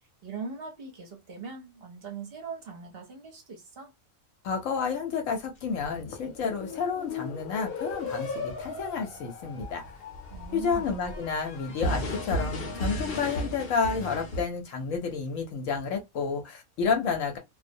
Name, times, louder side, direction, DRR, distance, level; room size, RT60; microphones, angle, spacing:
voice 1, 0.2-3.9 10.3-10.9, right 5 dB, 55° right, 0.8 m, -40 dB
voice 2, 4.4-9.8 10.5-17.4, left 5 dB, 75° left, 1.0 m, -30 dB
sound 1, 5.7-14.4, left 1 dB, 55° left, 0.9 m, -35 dB
2.3 x 2.0 x 2.6 m
omnidirectional pair, 1.4 m